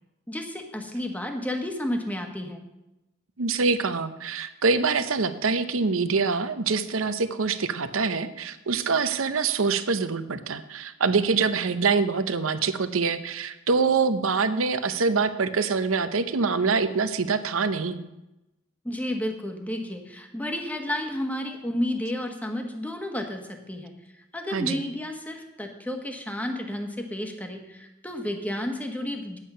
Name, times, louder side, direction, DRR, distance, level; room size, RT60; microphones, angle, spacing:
voice 1, 0.3-2.6 18.8-23.9 24.3-29.4, left 1 dB, 10° left, 4 dB, 1.3 m, -31 dB
voice 2, 3.4-18.0 24.5-24.8, right 4 dB, 80° right, 11 dB, 0.8 m, -25 dB
10.0 x 8.4 x 5.6 m, 0.95 s
head